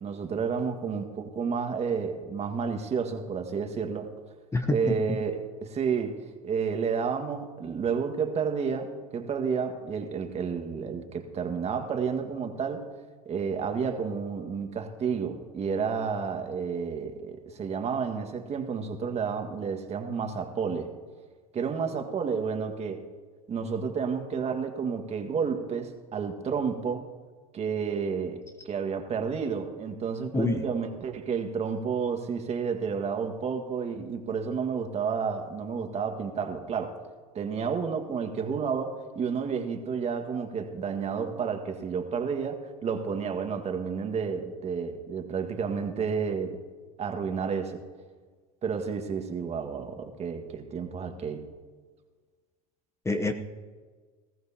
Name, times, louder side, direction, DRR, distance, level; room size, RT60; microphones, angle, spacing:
voice 1, 0.0-4.1 4.7-12.9 13.3-20.9 21.5-23.1 23.5-27.1 27.5-37.0 37.3-46.6 47.0-47.8 48.6-51.5, right 6 dB, 35° right, 5 dB, 1.7 m, -31 dB
voice 2, 4.5-5.2 30.3-30.6 53.0-53.3, left 2 dB, 15° left, 6 dB, 0.9 m, -27 dB
20.0 x 14.5 x 2.9 m, 1.5 s
hypercardioid pair, 90°, 19 cm